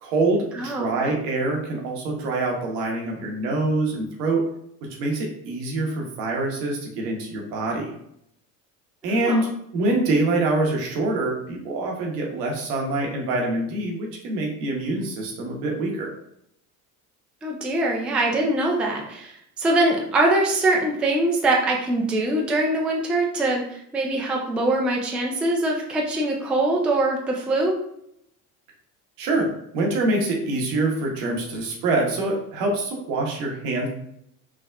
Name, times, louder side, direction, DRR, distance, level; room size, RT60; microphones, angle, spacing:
voice 1, 0.0-4.4 5.0-7.9 9.0-16.1 29.2-33.9, right 2 dB, 75° right, 0 dB, 0.9 m, -25 dB
voice 2, 0.5-1.0 9.2-9.4 17.4-19.3 19.6-27.8, right 2 dB, 5° right, -1 dB, 0.3 m, -23 dB
3.4 x 2.0 x 2.2 m, 0.75 s
hypercardioid pair, 70°, 46 cm